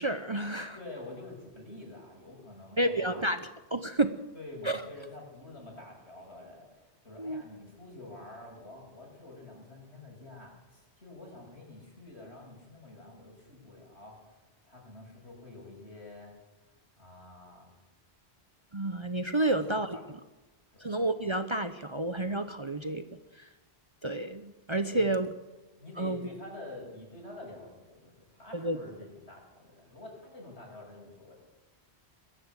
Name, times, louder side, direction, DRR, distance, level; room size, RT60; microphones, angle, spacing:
voice 1, 0.0-0.8 2.8-4.2 4.6-4.8 7.2-7.4 18.7-20.0 20.8-23.5 24.0-25.3 26.0-26.3 28.5-28.8, right 2 dB, 30° right, 9 dB, 0.8 m, -30 dB
voice 2, 0.7-3.3 4.3-14.3 14.6-16.4 17.0-17.7 19.5-20.0 20.7-20.9 24.9-25.1 25.8-31.3, left 2 dB, 75° left, 0 dB, 7.1 m, -47 dB
22.0 x 15.0 x 8.2 m, 1.1 s
omnidirectional pair, 1.1 m